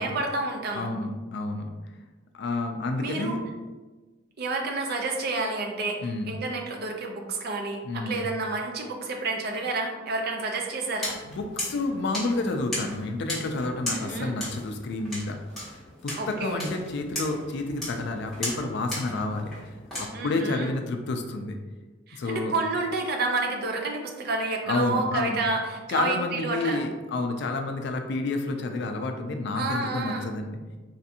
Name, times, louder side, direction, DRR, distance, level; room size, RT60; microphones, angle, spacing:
voice 1, 0.0-0.9 3.0-3.4 4.4-11.1 13.9-14.4 16.2-16.6 20.1-20.7 22.1-26.8 29.5-30.3, right 3 dB, 55° right, 2 dB, 0.5 m, -30 dB
voice 2, 0.7-1.7 2.3-3.4 6.0-6.3 7.8-8.3 11.2-15.4 16.0-19.5 20.0-21.6 22.2-22.5 24.7-25.4 25.9-30.6, left 2 dB, 60° left, 5 dB, 0.3 m, -29 dB
sound 1, 11.0-20.1, left 1 dB, ahead, 1.1 m, -37 dB
3.2 x 2.5 x 2.7 m, 1.2 s
head